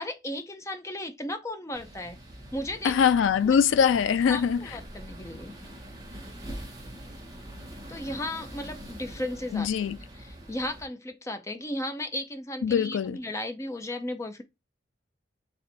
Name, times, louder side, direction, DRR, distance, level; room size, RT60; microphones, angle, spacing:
voice 1, 0.0-2.2 2.5-3.0 3.5-3.6 4.3-5.5 7.9-9.7 10.2-14.4, left 1 dB, 15° left, 0.5 m, -35 dB
sound 1, 1.7-10.9, equal, 20° right, 1.0 m, -44 dB
voice 2, 2.8-4.8 9.5-10.0 12.6-13.2, left 7 dB, 75° left, 0.3 m, -23 dB
4.2 x 2.5 x 3.9 m
head